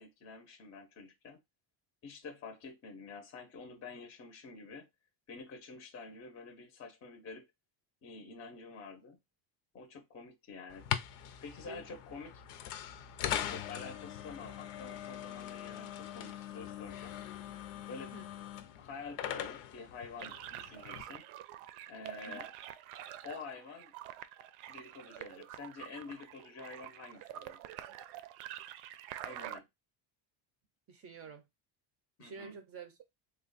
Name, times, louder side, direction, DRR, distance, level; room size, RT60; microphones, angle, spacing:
voice 1, 0.0-1.4 2.0-4.9 5.3-7.5 8.0-9.2 9.7-10.9 11.4-12.4 13.5-17.1 17.9-18.1 18.8-21.2 21.9-22.5 23.2-23.9 24.7-27.6 29.2-29.7 32.2-32.6, left 4 dB, 30° left, 0.6 m, -48 dB
sound 1, 10.7-21.0, left 11 dB, 85° left, 0.7 m, -41 dB
voice 2, 11.7-12.0 18.1-18.3 22.3-22.5 30.9-31.4 32.2-33.0, right 5 dB, 30° right, 0.4 m, -49 dB
sound 2, 20.2-29.6, right 12 dB, 80° right, 0.6 m, -47 dB
3.3 x 2.3 x 3.9 m
cardioid pair, 150°, 48 cm